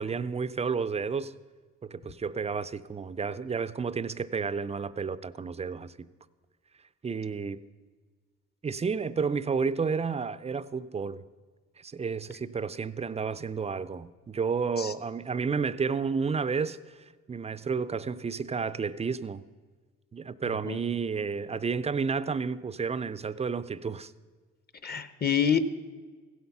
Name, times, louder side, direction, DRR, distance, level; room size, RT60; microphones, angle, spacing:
voice 1, 0.0-1.3 1.8-6.1 7.0-7.6 8.6-11.2 11.8-19.4 20.1-24.1, right 5 dB, 20° right, 0.4 m, -31 dB
voice 2, 20.4-20.8 24.8-25.6, left 8 dB, 30° left, 0.8 m, -27 dB
15.5 x 8.0 x 5.8 m
cardioid pair, 90°, 30 cm